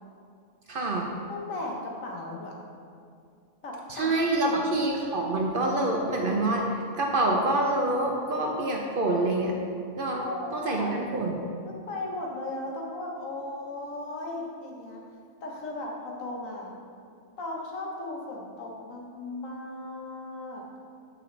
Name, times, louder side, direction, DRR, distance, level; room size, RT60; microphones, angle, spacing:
voice 1, 0.7-1.1 3.9-9.5 10.0-10.3 10.5-11.4, right 2 dB, 50° right, 0 dB, 0.8 m, -26 dB
voice 2, 1.3-2.5 3.6-4.1 4.4-4.8 10.1-10.9 11.6-15.0 15.4-16.7 17.4-20.6, left 2 dB, 80° left, -1 dB, 1.5 m, -36 dB
7.7 x 6.1 x 3.3 m, 2.3 s
omnidirectional pair, 1.4 m